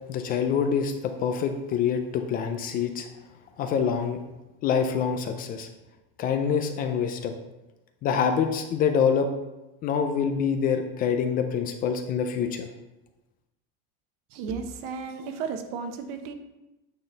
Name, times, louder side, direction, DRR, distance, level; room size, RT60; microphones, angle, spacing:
voice 1, 0.1-3.1 3.6-4.2 4.6-5.7 6.2-7.4 8.0-9.3 9.8-12.7, left 7 dB, 30° left, 7 dB, 0.4 m, -26 dB
voice 2, 14.3-16.3, right 5 dB, 70° right, 7 dB, 0.9 m, -34 dB
8.7 x 3.9 x 3.9 m, 1.0 s
cardioid pair, 165°, 31 cm